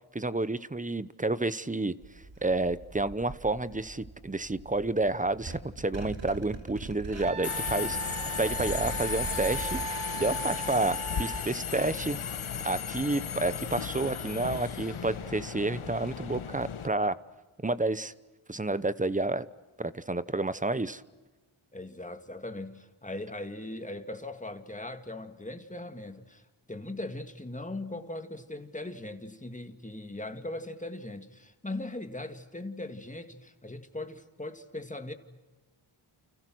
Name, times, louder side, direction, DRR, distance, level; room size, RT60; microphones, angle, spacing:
voice 1, 0.1-1.9 2.4-8.0 8.4-9.8 10.2-12.2 12.6-17.2 17.6-18.1 18.5-19.5 19.8-21.0, right 2 dB, 15° right, 0.9 m, -30 dB
sound 1, 2.0-9.9, right 3 dB, 60° right, 3.4 m, -42 dB
Wind instrument woodwind instrument, 7.2-11.4, right 5 dB, 80° right, 1.3 m, -38 dB
Subway metro underground, 7.4-16.9, left 7 dB, 75° left, 1.4 m, -35 dB
voice 2, 21.7-26.4 26.7-35.1, left 2 dB, 15° left, 2.0 m, -39 dB
30.0 x 29.5 x 6.3 m
wide cardioid pair, 115°, 50 cm